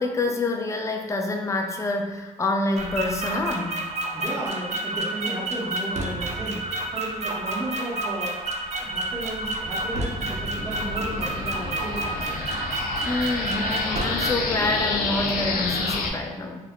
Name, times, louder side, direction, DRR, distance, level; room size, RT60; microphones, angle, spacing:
voice 1, 0.0-3.8 13.0-16.6, left 2 dB, 20° left, 3 dB, 0.4 m, -27 dB
sound 1, 2.8-14.3, right 2 dB, 50° right, 0.4 m, -30 dB
voice 2, 4.1-8.3 8.8-12.4, right 1 dB, 20° right, -5 dB, 0.8 m, -34 dB
sound 2, 8.8-16.1, left 3 dB, 80° left, 0.4 m, -30 dB
2.3 x 2.1 x 3.5 m, 1.2 s
cardioid pair, 90°, 15 cm